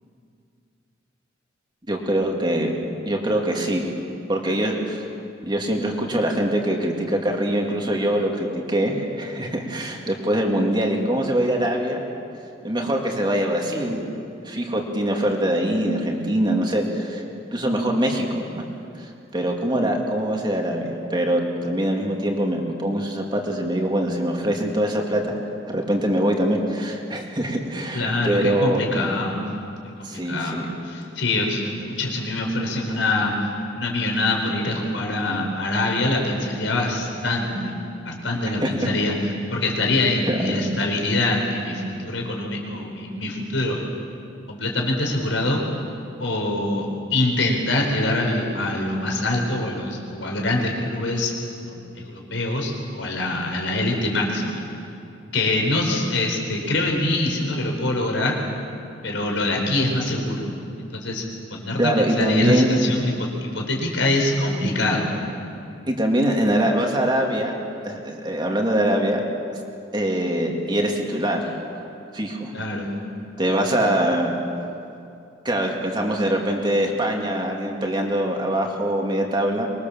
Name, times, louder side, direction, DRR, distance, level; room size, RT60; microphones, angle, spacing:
voice 1, 1.9-2.7 3.1-3.9 4.3-5.1 5.4-12.0 12.6-14.0 14.4-17.2 17.5-18.6 19.3-25.3 25.7-28.8 30.0-30.7 38.6-38.7 40.3-40.6 61.8-62.7 65.9-67.5 67.8-69.2 69.9-71.5 72.1-72.5 73.4-74.3 75.4-79.7, right 1 dB, 25° right, 1 dB, 2.5 m, -23 dB
voice 2, 27.9-29.4 30.0-37.7 38.0-43.8 44.5-45.6 46.2-54.6 55.3-58.4 59.0-61.2 61.5-65.1 72.5-72.9, left 2 dB, 90° left, 1 dB, 4.6 m, -24 dB
24.0 x 22.0 x 7.2 m, 2.6 s
head